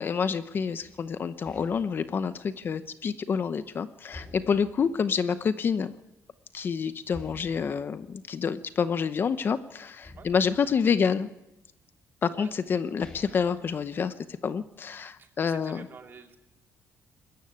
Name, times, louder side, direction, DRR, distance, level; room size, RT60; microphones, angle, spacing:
voice 1, 0.0-5.9 6.5-11.3 12.2-14.1 14.4-15.9, left 6 dB, 40° left, 12 dB, 0.8 m, -28 dB
sound 1, 0.8-3.6 4.1-6.1 6.4-6.5 7.1-9.5 10.0-11.6 12.4-12.5 12.8-14.6, left 2 dB, 15° left, 5.7 m, -51 dB
voice 2, 15.2-16.4, right 5 dB, 40° right, 4 dB, 2.6 m, -48 dB
20.5 x 14.5 x 9.5 m, 0.92 s
cardioid pair, 145°, 6 cm